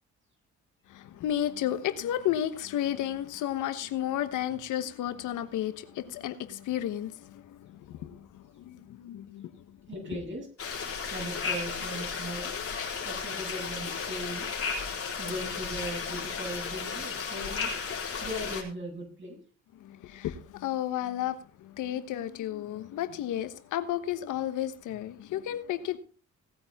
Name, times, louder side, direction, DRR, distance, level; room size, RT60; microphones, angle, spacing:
voice 1, 0.9-9.8 10.0-10.2 19.7-26.0, left 11 dB, 85° left, 1.2 m, -33 dB
voice 2, 9.9-10.5 11.1-12.5 13.0-14.5 15.2-17.7 18.2-19.4, right 1 dB, 40° right, 7.9 m, -38 dB
sound 1, 10.6-18.6, left 5 dB, 50° left, 3.8 m, -34 dB
18.0 x 8.9 x 3.6 m
cardioid pair, 90°, 30 cm